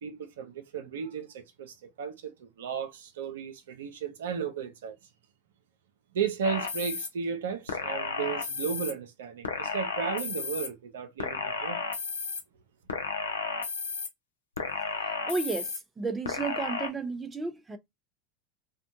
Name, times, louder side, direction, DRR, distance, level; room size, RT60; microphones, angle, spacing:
voice 1, 0.0-5.0 6.1-11.8, right 7 dB, 70° right, 0.4 m, -34 dB
sound 1, 6.4-7.1 7.7-8.9 9.4-10.7 11.2-12.4 12.9-14.1 14.6-15.8 16.2-16.9, left 5 dB, 80° left, 0.5 m, -33 dB
voice 2, 15.3-17.8, right 4 dB, 15° right, 0.5 m, -32 dB
2.6 x 2.2 x 2.5 m
figure-of-eight pair, 80°, 0 cm